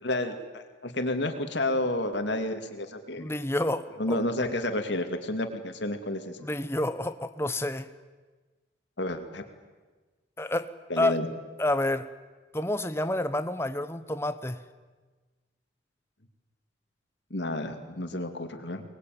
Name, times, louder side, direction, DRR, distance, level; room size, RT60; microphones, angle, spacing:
voice 1, 0.0-3.3 4.0-6.5 9.0-9.4 10.9-11.3 17.3-18.8, left 1 dB, 65° left, 7 dB, 2.4 m, -30 dB
voice 2, 3.2-4.2 6.4-7.9 10.4-10.7 11.0-11.2 11.6-12.1 12.5-14.6, left 1 dB, 15° left, 11 dB, 0.9 m, -29 dB
24.0 x 20.0 x 9.4 m, 1.3 s
head